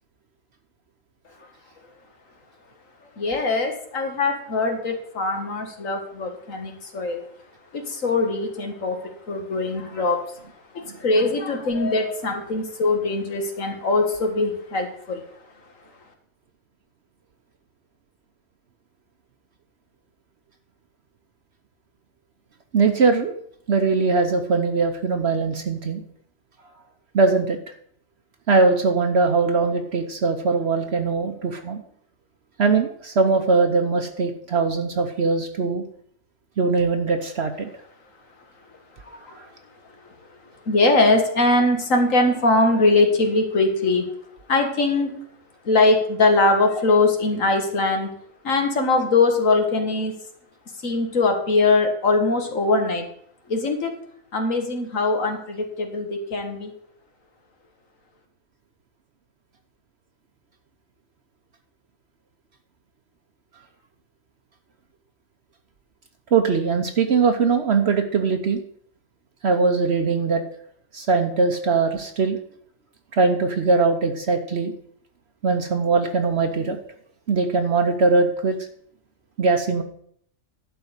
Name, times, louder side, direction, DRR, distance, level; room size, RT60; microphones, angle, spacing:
voice 1, 3.2-7.2 7.7-9.0 9.3-10.2 10.7-15.2 39.0-39.3 40.7-44.0 44.5-45.2 45.7-48.1 48.4-50.1 50.8-53.1 53.5-53.9 54.3-56.7, left 3 dB, 80° left, 4 dB, 2.1 m, -21 dB
voice 2, 22.7-23.3 23.7-26.0 27.1-27.6 28.5-31.8 32.6-35.8 36.6-37.7 39.3-39.4 66.3-68.6 69.4-70.4 70.9-72.4 73.1-74.7 75.4-76.8 77.3-78.6 79.4-79.8, right 4 dB, 60° right, 6 dB, 1.1 m, -21 dB
11.5 x 4.7 x 8.1 m, 0.64 s
omnidirectional pair, 1.3 m